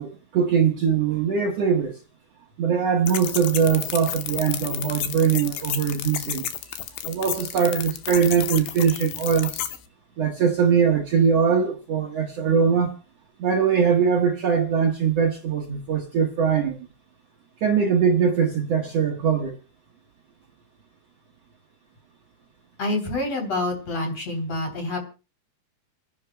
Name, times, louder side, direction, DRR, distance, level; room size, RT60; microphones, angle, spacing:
voice 1, 0.0-2.0 2.6-6.4 7.0-9.7 10.2-13.0 13.4-16.8 17.6-19.5, right 7 dB, 85° right, 1.4 m, -22 dB
sound 1, 3.1-9.8, left 12 dB, 90° left, 2.9 m, -31 dB
voice 2, 22.8-25.0, left 2 dB, 40° left, 4.0 m, -27 dB
29.0 x 10.5 x 2.2 m
omnidirectional pair, 4.5 m